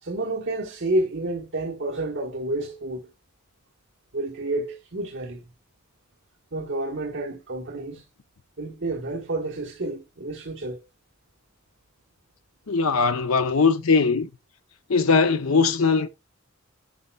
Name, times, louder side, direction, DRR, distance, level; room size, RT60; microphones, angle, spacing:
voice 1, 0.0-3.1 4.1-5.4 6.5-8.0 8.6-10.8, right 2 dB, 60° right, 1.3 m, -29 dB
voice 2, 12.7-14.3 14.9-16.1, left 4 dB, 80° left, 0.7 m, -20 dB
11.0 x 4.3 x 2.3 m
head